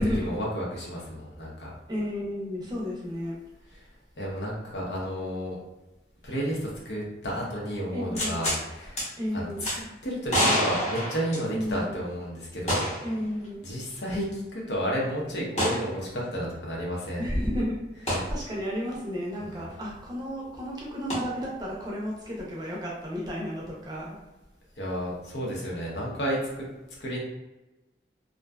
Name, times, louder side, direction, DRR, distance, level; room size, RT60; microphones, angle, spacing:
voice 1, 0.0-1.7 3.7-3.9 4.2-5.6 6.2-9.1 9.3-12.9 13.6-17.3 18.1-18.2 19.4-19.7 24.8-26.7 27.0-27.2, equal, 75° left, -4 dB, 0.8 m, -32 dB
voice 2, 1.9-3.4 7.9-8.4 9.2-9.7 11.5-12.0 13.0-13.6 17.2-24.2, equal, 25° right, -4 dB, 0.5 m, -32 dB
sound 1, 8.1-8.6 9.0-9.1 9.6-9.8 10.3-11.8 12.7-13.1 13.4-13.5 15.6-15.8 18.1-18.3 21.1-21.2, equal, 40° left, 0.9 m, -27 dB
2.5 x 2.2 x 2.2 m, 1.0 s
head